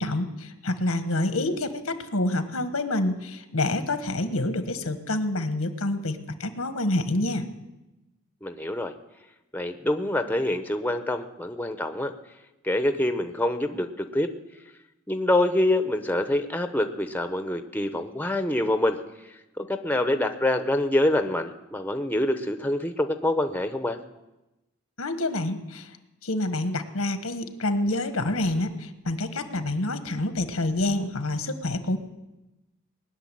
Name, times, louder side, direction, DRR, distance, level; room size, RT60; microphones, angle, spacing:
voice 1, 0.0-7.5 25.0-25.9 26.2-32.0, left 2 dB, 90° left, 9 dB, 1.4 m, -27 dB
voice 2, 8.4-8.9 9.5-12.1 12.6-14.3 15.1-24.0, left 1 dB, 10° left, 8 dB, 0.7 m, -26 dB
20.5 x 6.9 x 10.0 m, 1.0 s
head